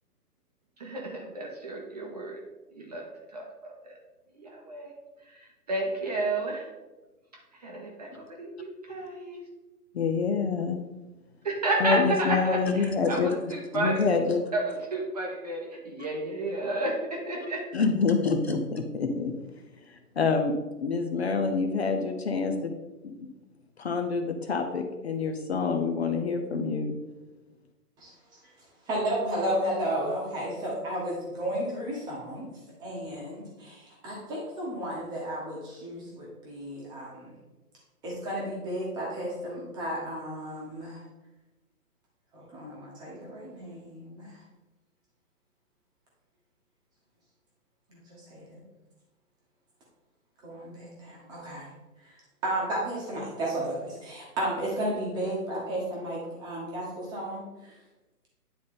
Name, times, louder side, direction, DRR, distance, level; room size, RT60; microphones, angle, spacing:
voice 1, 0.8-2.4 2.7-3.0 3.3-3.7 4.4-4.9 5.3-5.4 5.7-6.7 7.6-9.4 11.4-14.0 14.5-17.6, right 2 dB, 25° right, 0 dB, 0.7 m, -31 dB
voice 2, 9.9-10.8 11.8-13.4 13.7-14.4 17.7-19.3 19.9-22.7 23.0-23.3 23.8-27.0, left 4 dB, 45° left, 5 dB, 0.6 m, -27 dB
voice 3, 28.9-32.5 32.8-37.3 38.0-41.0 42.3-44.4 47.9-48.6 50.4-51.7 52.0-52.1 52.4-57.7, right 1 dB, 10° right, -4 dB, 1.1 m, -33 dB
9.6 x 3.8 x 3.8 m, 1.1 s
hypercardioid pair, 155°, 46 cm